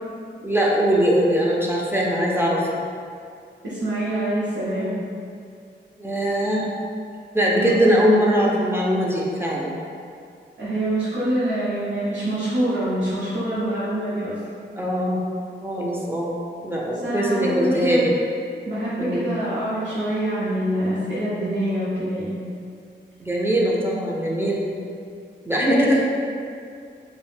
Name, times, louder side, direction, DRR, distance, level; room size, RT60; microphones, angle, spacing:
voice 1, 0.4-2.7 6.0-6.7 7.3-9.8 14.8-15.2 15.6-16.4 16.6-18.1 19.0-19.3 23.2-24.6 25.5-25.9, equal, 10° right, -4 dB, 0.3 m, -21 dB
voice 2, 3.6-4.9 7.5-7.9 10.6-14.3 17.0-18.0 18.7-22.4 25.6-25.9, right 1 dB, 70° right, -11 dB, 0.7 m, -25 dB
2.4 x 2.1 x 3.1 m, 2.3 s
wide cardioid pair, 100°, 19 cm